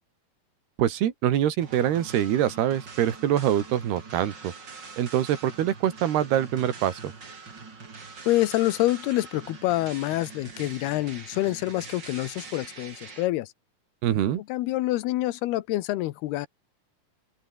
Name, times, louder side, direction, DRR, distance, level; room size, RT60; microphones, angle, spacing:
voice 1, 0.8-4.5 5.0-7.1 14.0-14.4, right 11 dB, 90° right, 4.1 m, -24 dB
sound 1, 1.6-13.3, right 4 dB, 30° right, 3.3 m, -44 dB
voice 2, 8.3-13.5 14.5-16.5, left 16 dB, 85° left, 3.0 m, -26 dB
open air
omnidirectional pair, 4.5 m